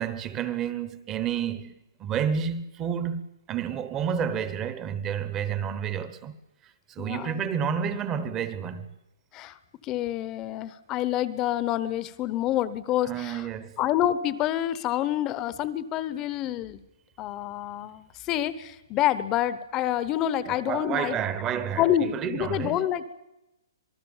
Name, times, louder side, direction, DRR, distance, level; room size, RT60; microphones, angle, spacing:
voice 1, 0.0-1.7 2.0-3.2 3.5-6.4 7.0-8.9 13.1-13.7 20.5-21.8 22.1-22.8, right 8 dB, 15° right, 1.0 m, -30 dB
voice 2, 7.0-7.4 9.3-13.5 13.8-16.8 17.2-21.2 21.8-23.0, left 12 dB, 15° left, 0.9 m, -28 dB
26.5 x 19.5 x 7.3 m
hypercardioid pair, 175°, 2 cm